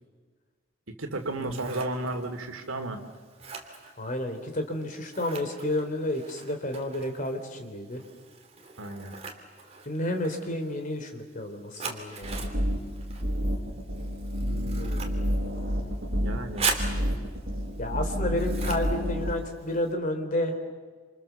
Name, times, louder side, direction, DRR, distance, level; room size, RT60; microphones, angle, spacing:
voice 1, 0.9-3.0 8.8-9.2 16.1-16.7, right 2 dB, 85° right, 5 dB, 2.5 m, -33 dB
Scissors, 1.1-19.9, right 4 dB, 30° right, 3.0 m, -41 dB
voice 2, 1.4-1.9 4.0-8.0 9.8-12.4 14.4-15.2 17.8-20.7, left 1 dB, 40° left, 5 dB, 3.3 m, -31 dB
sound 1, 12.2-19.3, equal, 50° right, 5.9 m, -29 dB
27.5 x 27.5 x 7.0 m, 1.5 s
head